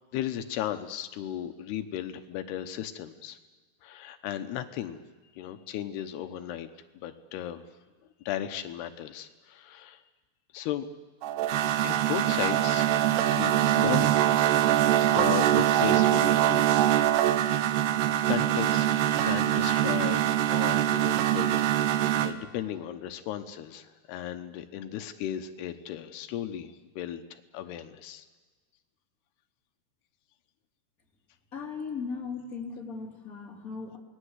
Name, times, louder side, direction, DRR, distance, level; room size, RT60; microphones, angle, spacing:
voice 1, 0.1-3.4 3.8-5.0 5.4-6.7 6.9-7.7 8.3-10.0 10.5-10.9 11.8-14.4 15.1-17.2 17.7-17.9 18.3-18.9 19.2-28.3, left 11 dB, 85° left, 9 dB, 3.1 m, -36 dB
sound 1, 11.2-22.3, right 12 dB, 90° right, 3.1 m, -24 dB
voice 2, 31.5-34.0, left 5 dB, 20° left, 0 dB, 3.6 m, -37 dB
28.5 x 20.0 x 8.1 m, 1.4 s
omnidirectional pair, 4.6 m